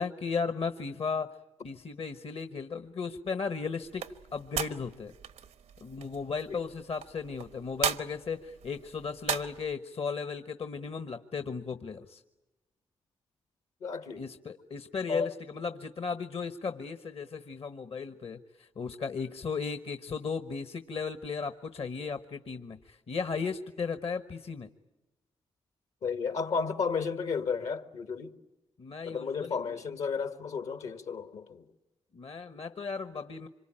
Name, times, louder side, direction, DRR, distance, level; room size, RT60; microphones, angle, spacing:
voice 1, 0.0-1.4 1.6-4.0 4.3-5.1 5.8-12.2 14.1-24.7 28.8-29.6 32.1-33.5, left 5 dB, 55° left, 1.2 m, -35 dB
sound 1, 3.8-9.7, right 8 dB, 85° right, 1.0 m, -38 dB
voice 2, 13.8-14.3 15.1-15.3 26.0-28.4 29.0-31.6, left 5 dB, 75° left, 1.9 m, -33 dB
26.0 x 24.0 x 8.8 m
supercardioid pair, 50°, 12 cm